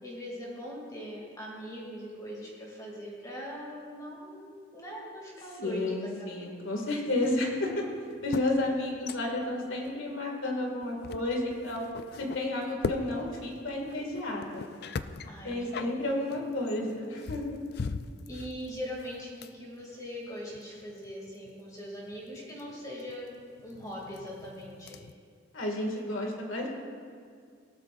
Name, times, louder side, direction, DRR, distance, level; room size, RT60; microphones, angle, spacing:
voice 1, 0.0-6.4 15.3-16.0 18.3-23.3 23.6-25.0, equal, 20° left, -4 dB, 2.6 m, -41 dB
voice 2, 5.6-7.8 8.2-11.8 12.2-14.6 15.4-17.5 25.5-26.7, left 1 dB, 85° left, 0 dB, 2.3 m, -31 dB
sound 1, 7.1-9.6 9.8-10.0 10.7-25.1, left 4 dB, 50° left, 0.4 m, -41 dB
18.0 x 12.5 x 2.6 m, 2.1 s
head